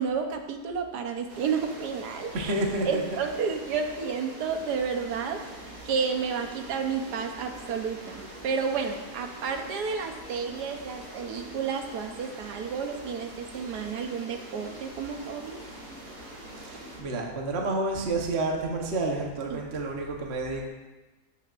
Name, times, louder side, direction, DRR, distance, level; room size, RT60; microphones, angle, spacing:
voice 1, 0.0-2.5 2.8-5.4 5.8-15.6 19.5-19.6, right 6 dB, 70° right, 5 dB, 1.5 m, -31 dB
sound 1, 1.3-17.0, right 1 dB, 90° right, 3.4 m, -44 dB
voice 2, 2.3-3.0 16.6-20.7, right 2 dB, 40° right, 0 dB, 1.3 m, -29 dB
14.5 x 9.1 x 2.6 m, 1.2 s
omnidirectional pair, 1.8 m